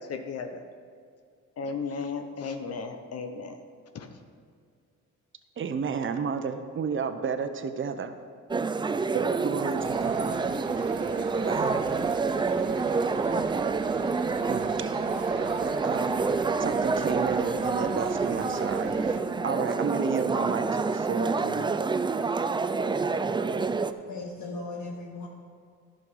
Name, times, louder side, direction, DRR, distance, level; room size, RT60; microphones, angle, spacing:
voice 1, 0.1-0.6 1.6-3.6 3.9-4.2, left 5 dB, 55° left, 6 dB, 0.9 m, -35 dB
voice 2, 5.6-8.2 9.1-10.4 11.5-12.0 14.5-16.2 16.6-21.7, right 6 dB, 40° right, 9 dB, 0.8 m, -32 dB
sound 1, 8.5-23.9, right 4 dB, 15° right, 0.4 m, -27 dB
voice 3, 9.5-10.6 23.7-25.3, left 2 dB, 70° left, -3 dB, 1.9 m, -40 dB
sound 2, 9.8-19.2, right 6 dB, 90° right, 0.9 m, -43 dB
11.0 x 6.5 x 5.4 m, 2.2 s
cardioid pair, 90°, 30 cm